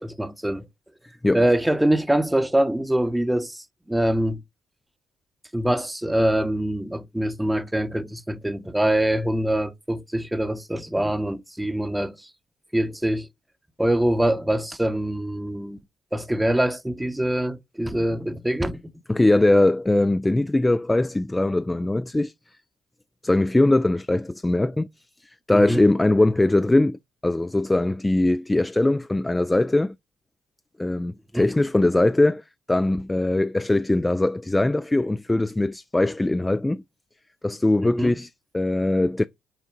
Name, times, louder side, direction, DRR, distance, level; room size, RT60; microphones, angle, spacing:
voice 1, 0.0-0.7 1.3-4.4 5.5-12.2 12.7-13.3 13.8-15.8 16.1-18.9 25.5-25.8 31.3-31.5 38.0-38.1, right 1 dB, 10° right, 0.8 m, -24 dB
voice 2, 19.1-22.3 23.2-24.9 25.2-30.0 30.8-32.4 32.7-36.8 37.4-39.2, left 2 dB, 15° left, 0.3 m, -21 dB
5.9 x 3.7 x 4.4 m
supercardioid pair, 60°, 0 cm